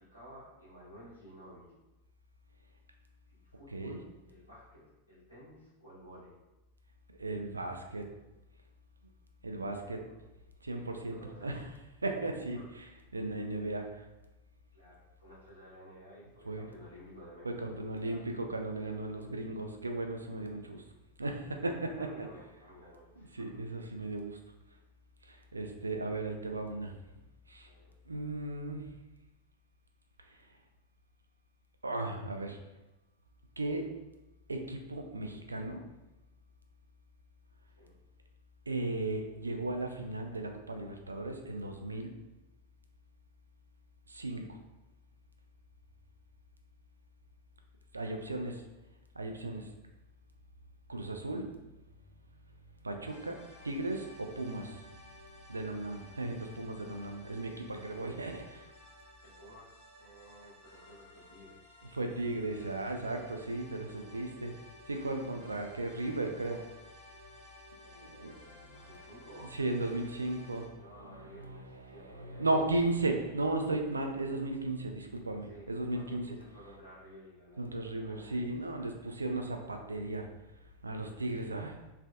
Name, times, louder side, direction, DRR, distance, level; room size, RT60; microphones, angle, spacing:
voice 1, 0.0-1.7 3.5-4.0 4.3-4.8 5.1-6.4 9.7-10.2 11.1-11.5 12.5-12.7 14.7-18.3 22.0-23.6 27.6-27.9 37.8-38.0 48.1-48.4 59.2-61.6 64.0-64.2 65.3-65.6 67.8-69.5 70.7-72.5 75.5-78.5, equal, 85° left, -10 dB, 1.4 m, -54 dB
voice 2, 7.2-8.1 9.4-10.0 10.6-11.7 12.0-13.9 16.5-16.7 17.4-20.8 21.2-22.3 23.3-24.4 25.3-26.9 27.5-27.7 28.1-28.8 31.8-32.6 33.6-33.9 34.5-35.8 38.7-42.1 44.1-44.6 47.9-48.5 49.2-49.7 50.9-51.5 52.8-53.4 53.6-54.8 55.5-58.7 61.9-64.5 64.9-66.6 68.2-68.3 68.7-69.0 69.5-76.4 77.6-80.3 80.8-81.8, right 2 dB, 80° right, 4 dB, 0.3 m, -36 dB
sound 1, 53.1-70.7, left 1 dB, 40° left, 1.2 m, -56 dB
3.2 x 2.5 x 2.3 m, 1.0 s
figure-of-eight pair, 90°, 0 cm